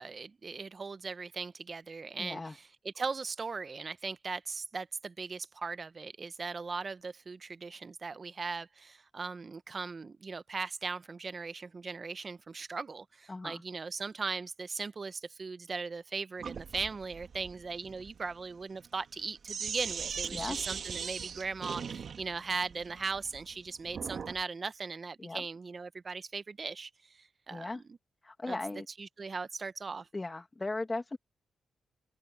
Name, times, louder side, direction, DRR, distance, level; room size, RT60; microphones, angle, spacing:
voice 1, 0.0-28.0 28.5-28.6 29.0-30.1, right 4 dB, 45° right, 1.1 m, -39 dB
voice 2, 2.2-2.5 13.3-13.6 20.3-20.6 25.2-25.4 27.5-27.8 28.2-28.9 30.1-31.2, left 2 dB, 25° left, 2.5 m, -37 dB
Sink (filling or washing), 16.4-24.4, right 6 dB, 65° right, 1.9 m, -40 dB
open air
cardioid pair, 60°, 0 cm